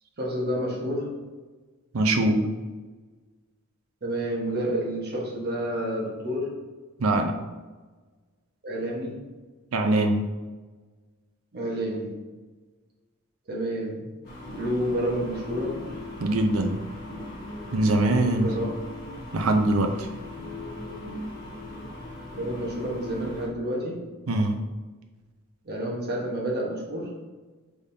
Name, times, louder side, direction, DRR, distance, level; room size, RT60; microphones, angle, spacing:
voice 1, 0.2-1.1 4.0-6.5 8.6-9.2 11.5-12.2 13.5-14.1 14.6-15.8 18.4-18.7 22.3-24.1 25.6-27.2, right 1 dB, 50° right, -3 dB, 1.2 m, -29 dB
voice 2, 1.9-2.5 7.0-7.3 9.7-10.2 16.2-16.8 17.7-18.5 19.3-20.1 24.3-24.6, right 2 dB, 85° right, 5 dB, 0.6 m, -22 dB
sound 1, 14.2-23.5, left 1 dB, 45° left, 1.2 m, -38 dB
5.1 x 3.6 x 2.7 m, 1.3 s
head